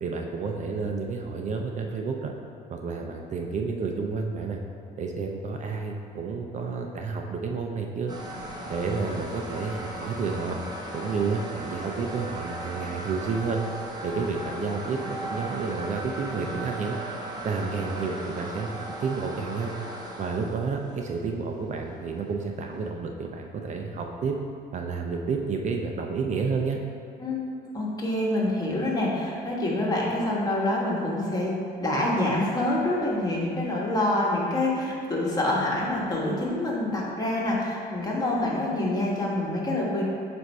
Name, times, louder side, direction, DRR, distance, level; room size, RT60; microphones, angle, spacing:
voice 1, 0.0-2.3 2.7-4.6 5.0-8.1 8.7-10.6 10.9-13.6 14.0-17.0 17.4-19.7 20.2-24.4 24.7-26.8, right 4 dB, 45° right, 2 dB, 0.5 m, -30 dB
sound 1, 8.1-22.9, right 1 dB, 25° right, 0.9 m, -37 dB
voice 2, 27.7-40.0, left 1 dB, 20° left, -4 dB, 1.3 m, -26 dB
7.7 x 2.6 x 5.4 m, 2.4 s
cardioid pair, 110°, 17 cm